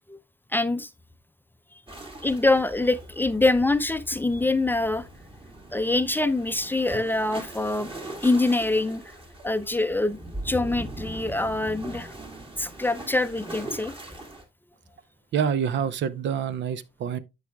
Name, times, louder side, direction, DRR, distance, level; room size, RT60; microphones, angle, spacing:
voice 1, 0.5-0.9 2.2-5.1 5.7-7.9 8.2-9.0 9.4-10.2 10.4-12.1 12.6-13.9, left 2 dB, 10° left, 0.5 m, -24 dB
sound 1, 1.9-14.4, right 1 dB, 25° right, 2.1 m, -41 dB
voice 2, 15.3-17.2, right 8 dB, 65° right, 0.7 m, -27 dB
13.0 x 4.8 x 2.3 m
cardioid pair, 90°, 20 cm